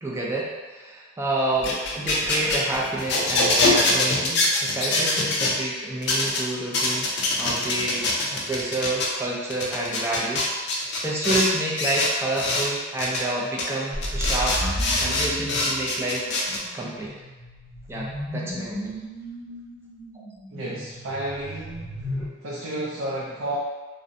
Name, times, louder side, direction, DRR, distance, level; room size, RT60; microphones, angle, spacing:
voice 1, 0.0-7.1 7.4-14.6 14.9-16.3 16.7-17.1 17.9-18.9, right 2 dB, 15° right, -5 dB, 0.3 m, -29 dB
sound 1, 1.5-5.5 6.0-6.4 6.7-9.1 9.5-11.5 11.8-12.7 13.0-13.2 13.6-13.7 14.0-16.6, left 2 dB, 60° left, 0.4 m, -24 dB
sound 2, 14.0-22.3, equal, 30° right, 0.9 m, -34 dB
voice 2, 20.5-22.1 22.4-23.6, right 1 dB, 90° right, -5 dB, 0.4 m, -32 dB
2.5 x 2.1 x 2.5 m, 1.3 s
head